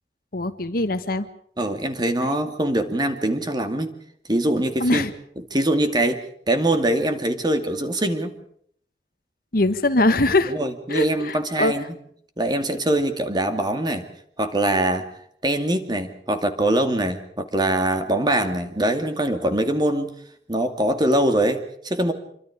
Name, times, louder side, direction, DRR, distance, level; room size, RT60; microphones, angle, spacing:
voice 1, 0.3-1.3 2.2-2.4 4.8-5.1 9.5-10.5 10.9-11.7, left 2 dB, 55° left, 11 dB, 1.4 m, -22 dB
voice 2, 1.6-3.9 4.3-5.1 5.5-6.2 6.5-8.4 10.5-11.8 12.4-14.1 14.4-15.1 15.4-20.1 20.5-22.1, right 1 dB, 25° right, 7 dB, 2.4 m, -23 dB
26.5 x 24.0 x 5.0 m, 0.65 s
head